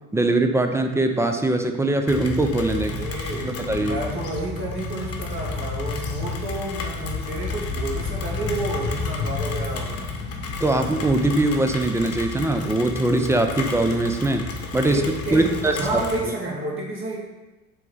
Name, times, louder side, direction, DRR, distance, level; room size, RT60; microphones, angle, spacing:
voice 1, 0.1-3.0 3.4-4.0 10.6-15.0 15.3-16.0, right 2 dB, 5° right, 6 dB, 0.4 m, -22 dB
Rain, 2.1-16.3, left 4 dB, 35° left, 1.1 m, -31 dB
voice 2, 2.8-10.1 14.9-17.2, right 2 dB, 30° right, -3 dB, 2.0 m, -30 dB
7.5 x 3.2 x 5.4 m, 1.1 s
figure-of-eight pair, 65°, 43 cm